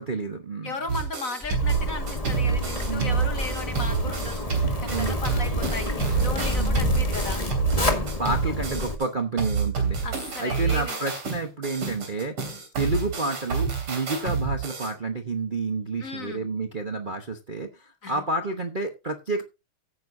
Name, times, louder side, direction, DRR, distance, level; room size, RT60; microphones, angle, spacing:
voice 1, 0.0-0.7 2.8-3.3 4.9-5.2 6.6-7.0 7.7-10.0 10.4-12.4 12.8-19.4, right 3 dB, 35° right, 0.8 m, -30 dB
voice 2, 0.6-7.4 10.0-11.0 16.0-16.4 18.0-18.2, left 3 dB, 45° left, 1.3 m, -36 dB
sound 1, 0.9-9.0 9.4-14.9, right 6 dB, 85° right, 4.0 m, -28 dB
Zipper (clothing), 1.4-8.9, left 1 dB, 20° left, 1.7 m, -28 dB
16.0 x 9.5 x 2.7 m
omnidirectional pair, 2.4 m